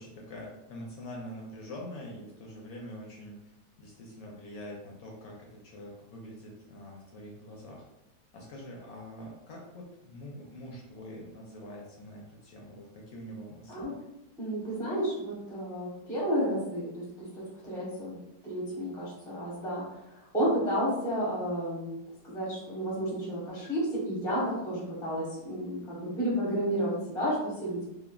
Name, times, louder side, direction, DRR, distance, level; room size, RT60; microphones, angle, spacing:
voice 1, 0.0-7.8 8.3-13.9, equal, 70° left, -2 dB, 0.9 m, -45 dB
voice 2, 14.4-18.2 18.4-22.0 22.2-27.8, equal, 5° left, -6 dB, 0.4 m, -31 dB
3.3 x 2.1 x 2.2 m, 0.90 s
omnidirectional pair, 1.8 m